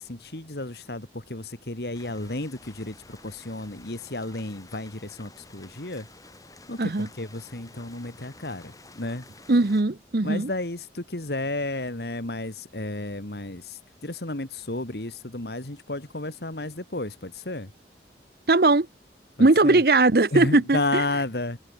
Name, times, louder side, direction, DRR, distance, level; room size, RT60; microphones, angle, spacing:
voice 1, 0.0-6.1 6.7-9.3 10.2-17.7 19.4-19.8 20.3-21.6, left 2 dB, 70° left, 2.4 m, -32 dB
sound 1, 1.9-9.8, left 3 dB, 20° left, 5.4 m, -51 dB
voice 2, 6.8-7.1 9.5-10.5 18.5-18.9 19.4-21.1, right 2 dB, 60° right, 0.8 m, -19 dB
head